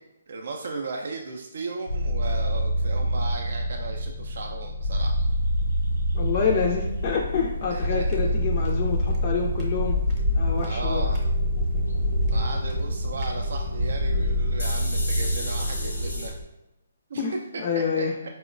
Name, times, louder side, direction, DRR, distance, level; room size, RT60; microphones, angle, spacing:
voice 1, 0.3-5.1 7.7-8.4 10.6-11.2 12.3-16.4 17.1-17.2 17.5-18.1, right 3 dB, 60° right, 2 dB, 0.3 m, -36 dB
sound 1, 1.9-16.3, equal, 90° left, 0.8 m, -27 dB
sound 2, 4.9-16.4, left 1 dB, 85° right, 0.7 m, -31 dB
voice 2, 6.1-10.0 10.4-11.1 17.2-17.3 17.6-18.1, left 6 dB, 35° left, 0 dB, 0.3 m, -27 dB
sound 3, 7.9-14.0, equal, 25° right, 0.7 m, -37 dB
4.4 x 2.0 x 2.5 m, 0.93 s
hypercardioid pair, 155°, 0 cm